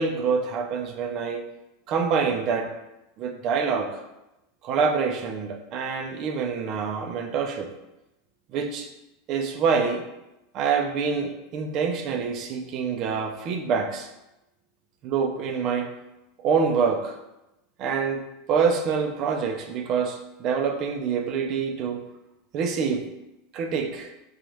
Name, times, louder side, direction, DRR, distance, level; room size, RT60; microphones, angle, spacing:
voice 1, 0.0-1.4 1.9-2.7 3.2-4.0 4.6-7.7 8.5-8.9 9.3-10.1 10.5-14.1 15.0-15.9 16.4-17.2 17.8-22.0 22.5-23.1 23.5-24.1, right 5 dB, 50° right, 4 dB, 0.5 m, -26 dB
3.9 x 2.4 x 3.1 m, 0.93 s
hypercardioid pair, 90°, 0 cm